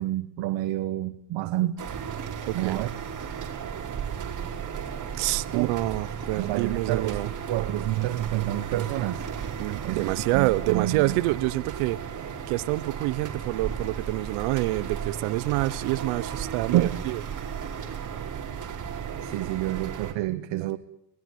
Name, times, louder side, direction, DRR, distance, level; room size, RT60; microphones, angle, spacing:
voice 1, 0.0-1.8 2.5-2.9 5.5-5.7 6.4-9.3 9.8-11.2 16.7-17.0 19.2-20.8, right 14 dB, 60° right, 1.4 m, -28 dB
sound 1, 1.8-20.1, right 7 dB, 35° right, 4.5 m, -35 dB
voice 2, 2.5-2.8 5.1-7.3 9.6-12.0 12.5-17.2 20.6-20.7, right 19 dB, 80° right, 1.1 m, -27 dB
24.0 x 18.5 x 9.4 m
cardioid pair, 105°, 49 cm